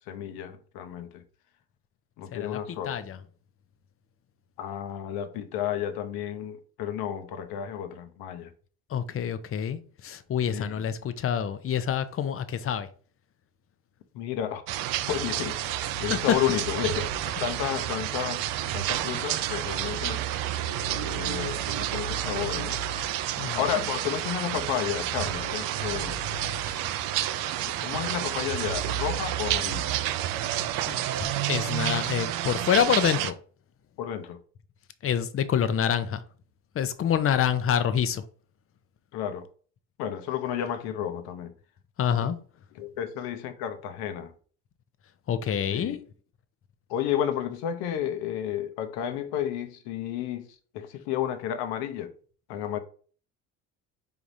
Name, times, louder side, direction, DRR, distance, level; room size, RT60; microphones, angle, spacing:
voice 1, 0.1-1.2 2.2-3.0 4.6-8.5 10.5-10.8 14.1-14.6 15.1-18.4 18.7-20.2 21.0-22.8 23.4-26.2 27.6-29.9 34.0-34.4 39.1-39.5 40.0-41.5 42.7-44.3 45.7-46.0 46.9-50.5 50.7-52.1 52.5-52.8, left 10 dB, 70° left, 0.8 m, -32 dB
voice 2, 2.8-3.2 8.9-12.9 16.1-16.2 23.4-23.7 26.6-26.8 30.9-33.3 35.0-36.2 36.7-38.2 42.0-42.4 45.3-46.0, left 8 dB, 35° left, 0.6 m, -27 dB
sound 1, 14.7-33.3, right 12 dB, 60° right, 0.5 m, -30 dB
4.7 x 3.5 x 2.7 m
hypercardioid pair, 70°, 39 cm